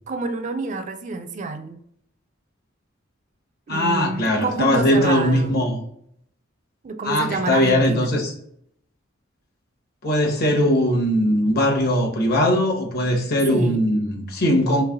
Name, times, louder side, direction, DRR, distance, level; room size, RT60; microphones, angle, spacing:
voice 1, 0.1-1.8 3.7-5.6 6.8-8.2 13.5-13.9, right 3 dB, 40° right, 0.4 m, -28 dB
voice 2, 3.7-5.8 7.0-8.3 10.0-14.8, left 1 dB, 55° left, 1.0 m, -20 dB
3.2 x 2.9 x 3.5 m
head